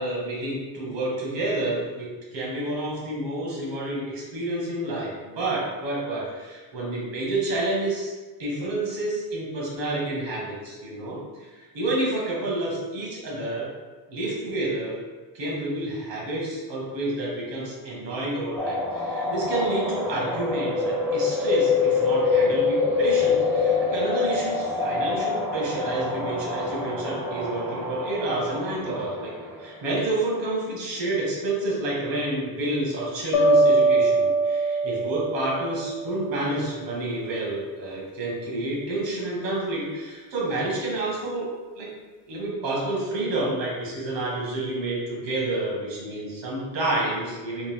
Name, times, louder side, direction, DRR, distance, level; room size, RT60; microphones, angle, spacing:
voice 1, 0.0-8.1 8.4-13.7 14.1-15.0 15.3-29.3 29.6-41.5 41.7-41.9 42.3-47.7, right 2 dB, 80° right, -4 dB, 1.4 m, -29 dB
sound 1, 18.6-29.8, left 4 dB, 5° right, 0.5 m, -26 dB
sound 2, 33.3-36.4, right 2 dB, 60° left, 0.7 m, -22 dB
3.5 x 2.6 x 3.5 m, 1.3 s
cardioid pair, 155°, 43 cm